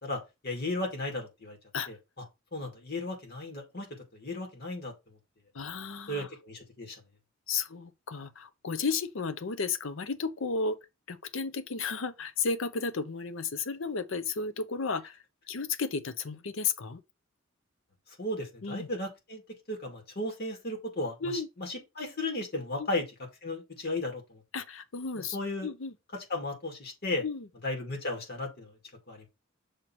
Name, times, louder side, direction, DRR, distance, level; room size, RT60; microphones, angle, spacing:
voice 1, 0.0-1.6 1.9-2.0 2.5-3.9 4.1-4.9 6.1-7.0 18.2-19.4 19.7-21.1 21.6-23.0 23.4-24.4 25.2-25.7 26.3-27.2 27.6-28.7 29.1-29.3, left 2 dB, 50° left, 2.2 m, -35 dB
voice 2, 5.5-6.3 7.5-10.8 11.1-15.2 15.5-17.0 18.6-18.9 21.2-21.5 22.8-22.9 24.5-25.4 25.6-25.9 27.2-27.5, left 4 dB, 70° left, 0.7 m, -33 dB
6.5 x 3.0 x 5.7 m
head